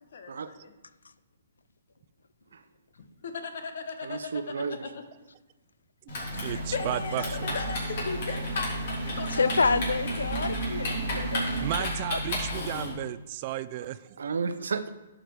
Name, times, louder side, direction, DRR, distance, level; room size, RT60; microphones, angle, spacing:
voice 1, 0.1-0.7 3.0-5.0 6.3-9.5, left 4 dB, 70° left, 7 dB, 1.1 m, -37 dB
voice 2, 4.0-4.8 13.8-13.9 14.2-14.9, right 5 dB, 80° right, 11 dB, 0.7 m, -32 dB
Typing, 6.1-12.9, left 1 dB, 50° left, 3.2 m, -33 dB
sound 1, 6.3-11.7, right 6 dB, 60° right, 1.0 m, -37 dB
voice 3, 6.4-7.5 10.4-10.5 11.6-14.1, right 13 dB, 40° right, 15 dB, 0.3 m, -34 dB
voice 4, 9.3-12.2, left 4 dB, 90° left, 14 dB, 0.4 m, -28 dB
11.5 x 5.1 x 4.6 m, 1.1 s
hypercardioid pair, 145°, 0 cm